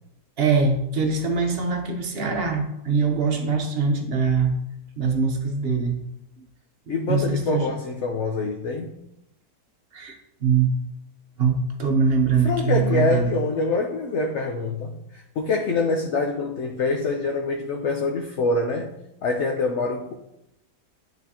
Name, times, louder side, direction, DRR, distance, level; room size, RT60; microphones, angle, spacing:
voice 1, 0.4-4.6 5.0-6.0 7.1-7.7 9.9-10.7 11.4-13.3, right 5 dB, 45° right, 4 dB, 0.9 m, -23 dB
voice 2, 6.9-8.9 12.4-18.9 19.2-20.1, left 3 dB, 60° left, 2 dB, 0.8 m, -25 dB
10.5 x 4.1 x 2.8 m, 0.83 s
omnidirectional pair, 1.6 m